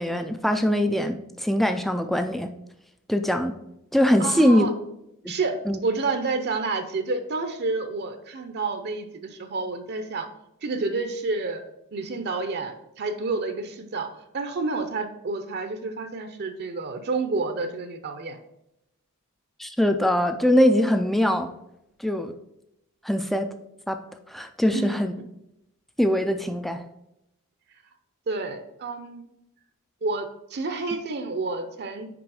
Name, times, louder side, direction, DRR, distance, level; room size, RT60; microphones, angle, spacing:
voice 1, 0.0-2.5 3.1-3.5 3.9-4.7 5.2-5.3 5.7-5.8 19.6-21.5 22.0-22.3 23.0-23.5 23.9-24.0 24.3-25.1 26.0-26.8, equal, ahead, 7 dB, 0.3 m, -22 dB
voice 2, 4.2-4.7 5.3-5.6 5.8-10.3 10.6-11.6 11.9-18.4 24.7-25.0 28.3-29.3 30.0-32.1, right 3 dB, 50° right, 7 dB, 0.6 m, -29 dB
6.1 x 5.0 x 4.8 m, 0.84 s
head